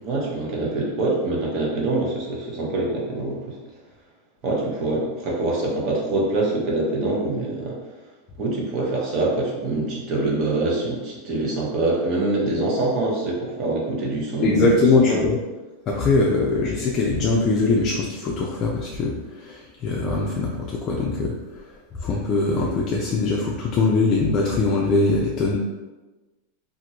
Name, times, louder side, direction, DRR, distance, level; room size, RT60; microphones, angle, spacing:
voice 1, 0.0-3.6 4.4-7.8 8.4-15.2, right 2 dB, 40° right, -3 dB, 0.8 m, -25 dB
voice 2, 14.4-15.4 15.9-21.3 22.0-25.6, left 3 dB, 35° left, -2 dB, 0.3 m, -21 dB
2.9 x 2.5 x 2.7 m, 1.2 s
supercardioid pair, 145°, 0 cm